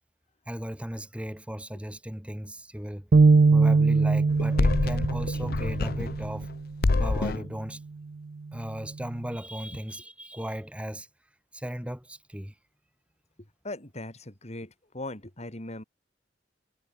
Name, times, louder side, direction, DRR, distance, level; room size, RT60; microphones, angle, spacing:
voice 1, 0.5-3.1 3.5-6.5 6.9-7.8 8.5-11.1 11.5-12.5, equal, 5° right, 2.4 m, -36 dB
sound 1, 3.1-6.6, right 4 dB, 55° right, 0.5 m, -21 dB
sound 2, 4.3-6.5 6.8-7.5, left 3 dB, 55° left, 0.6 m, -27 dB
voice 2, 13.6-15.8, left 2 dB, 35° left, 4.5 m, -39 dB
head